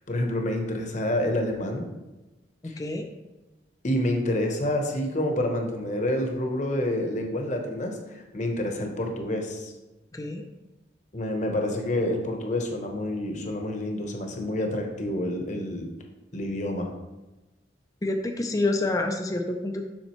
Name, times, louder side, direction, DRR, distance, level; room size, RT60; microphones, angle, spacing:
voice 1, 0.1-1.9 2.6-2.8 3.8-9.7 11.1-15.9 16.3-16.9, left 1 dB, 40° left, 3 dB, 1.0 m, -28 dB
voice 2, 2.6-3.1 10.1-10.4 18.0-19.9, left 2 dB, 20° left, 4 dB, 0.5 m, -28 dB
7.3 x 6.3 x 3.1 m, 1.1 s
head